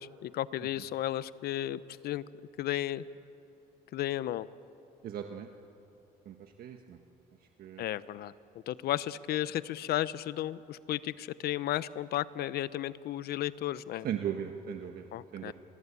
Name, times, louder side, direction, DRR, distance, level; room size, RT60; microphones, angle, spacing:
voice 1, 0.0-2.2 2.6-3.1 3.9-4.5 7.8-8.3 8.7-14.1 15.1-15.5, left 13 dB, 65° left, 16 dB, 0.8 m, -34 dB
voice 2, 5.0-5.5 6.3-7.0 7.6-7.8 14.0-15.0 15.3-15.5, right 9 dB, 60° right, 4 dB, 1.5 m, -37 dB
28.5 x 22.5 x 8.5 m, 2.9 s
cardioid pair, 110°, 17 cm